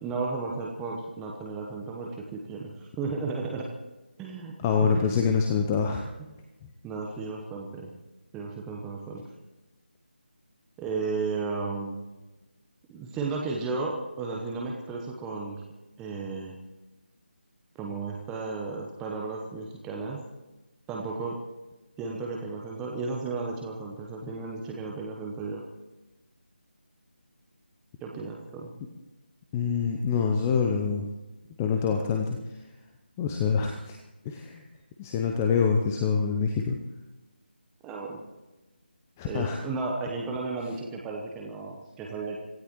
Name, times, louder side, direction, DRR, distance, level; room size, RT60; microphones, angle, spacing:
voice 1, 0.0-3.7 4.2-5.0 6.8-7.9 8.3-9.2 10.8-12.0 12.9-15.6 16.0-16.6 17.8-20.2 20.9-21.4 22.0-25.6 28.0-28.7 37.8-38.2 39.2-42.4, right 4 dB, 10° right, -1 dB, 1.0 m, -34 dB
voice 2, 4.6-6.0 29.5-31.0 31.6-32.4 33.2-34.0 34.2-34.6 35.0-36.8 39.2-39.6, left 6 dB, 15° left, 3 dB, 0.7 m, -25 dB
26.5 x 16.5 x 3.1 m, 1.1 s
figure-of-eight pair, 160°, 6 cm